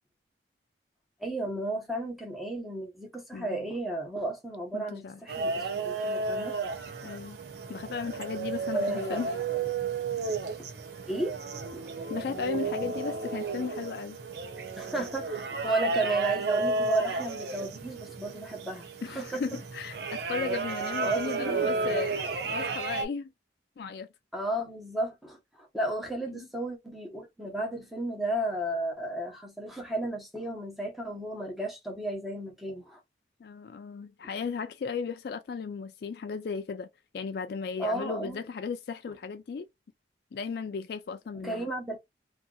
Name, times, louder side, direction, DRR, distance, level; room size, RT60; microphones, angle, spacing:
voice 1, 1.2-6.6 8.7-9.2 11.1-11.4 11.7-12.0 14.7-19.4 21.0-21.6 24.3-33.0 37.8-38.4 41.4-42.0, right 1 dB, ahead, 0.8 m, -33 dB
voice 2, 3.3-3.7 4.7-5.2 7.0-7.4 7.7-9.3 12.1-14.2 19.0-22.2 22.5-23.3 23.8-24.1 26.3-26.5 33.4-36.9 37.1-39.7 40.3-41.7, left 5 dB, 55° left, 0.3 m, -35 dB
sound 1, 5.3-23.1, right 4 dB, 60° right, 0.6 m, -33 dB
2.8 x 2.5 x 2.3 m
head